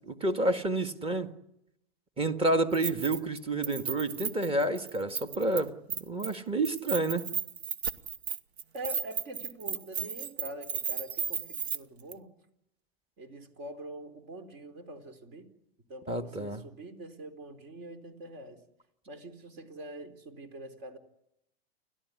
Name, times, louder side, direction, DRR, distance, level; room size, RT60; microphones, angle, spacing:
voice 1, 0.2-1.3 2.2-5.7 6.0-7.3 16.1-16.6, right 2 dB, 20° right, 1.9 m, -29 dB
Keys jangling, 2.7-3.4 3.6-5.6 5.9-6.3 6.6-11.8 12.1-12.2, right 7 dB, 90° right, 1.3 m, -34 dB
voice 2, 8.7-12.3 13.2-15.5 15.9-18.6 19.1-21.0, right 1 dB, 50° right, 4.2 m, -44 dB
29.5 x 13.0 x 9.8 m
hypercardioid pair, 120°, 31 cm